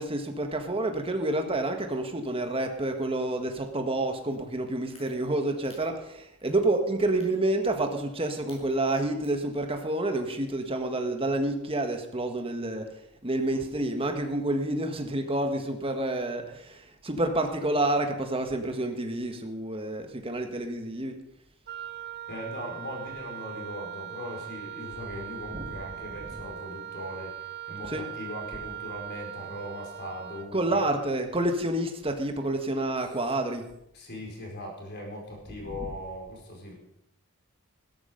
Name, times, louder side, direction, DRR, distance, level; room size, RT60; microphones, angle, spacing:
voice 1, 0.0-12.9 13.2-21.2 25.5-25.7 27.9-28.0 30.5-33.6, right 2 dB, 25° right, 5 dB, 1.6 m, -29 dB
sound 1, 4.3-4.4 4.9-5.1 5.6-5.8 6.4-6.6 7.1-7.3 7.9-8.1 8.4-8.8 9.2-9.5, left 3 dB, 25° left, 6.3 m, -53 dB
Wind instrument woodwind instrument, 21.7-30.5, right 11 dB, 45° right, 0.6 m, -40 dB
voice 2, 22.3-30.8 33.9-36.7, left 1 dB, 50° left, 0 dB, 4.8 m, -39 dB
16.5 x 13.5 x 5.3 m, 0.79 s
head